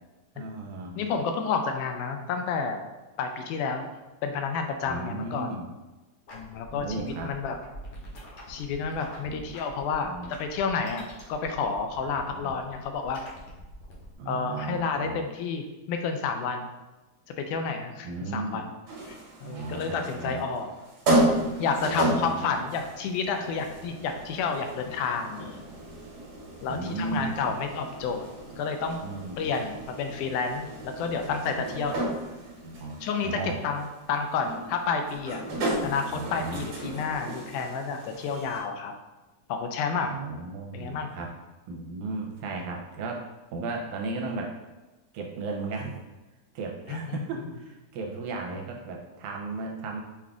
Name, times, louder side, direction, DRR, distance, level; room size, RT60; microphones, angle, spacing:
voice 1, 0.4-1.0 4.8-5.7 6.7-7.3 9.2-9.4 10.0-10.3 12.2-12.5 14.2-15.2 18.0-18.6 19.4-20.4 21.8-22.5 26.7-27.5 29.0-29.4 31.7-31.9 32.6-33.6 35.8-36.7 40.1-41.3 41.7-43.2 43.5-44.5 45.1-46.0 46.6-50.0, right 3 dB, 80° right, 0 dB, 2.0 m, -35 dB
voice 2, 1.0-2.8 3.2-3.9 4.2-5.6 6.3-7.6 8.5-13.2 14.3-16.7 17.4-18.7 19.1-20.7 21.6-25.7 26.6-28.3 28.6-29.0 29.4-32.0 33.0-33.4 33.6-35.4 35.8-38.9 39.5-40.1 40.7-41.1 46.9-47.2, left 5 dB, 85° left, 5 dB, 2.0 m, -30 dB
sound 1, 6.3-14.1, left 1 dB, 65° left, 1.7 m, -47 dB
sound 2, 18.9-38.6, right 1 dB, 55° right, 1.8 m, -33 dB
5.8 x 2.4 x 3.5 m, 1.1 s
omnidirectional pair, 3.5 m